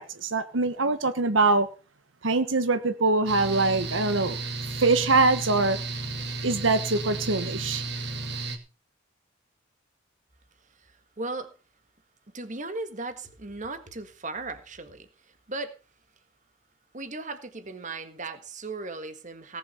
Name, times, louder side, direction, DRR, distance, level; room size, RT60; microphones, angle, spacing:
voice 1, 0.0-1.7 2.2-4.4 4.8-5.8 6.4-7.8, right 3 dB, 80° right, 1.2 m, -23 dB
Mechanical fan, 3.3-8.6, right 3 dB, 60° right, 2.5 m, -33 dB
voice 2, 11.2-11.5 12.3-15.1 15.5-15.7 16.9-19.6, right 3 dB, 40° right, 1.6 m, -36 dB
18.0 x 6.9 x 5.8 m
head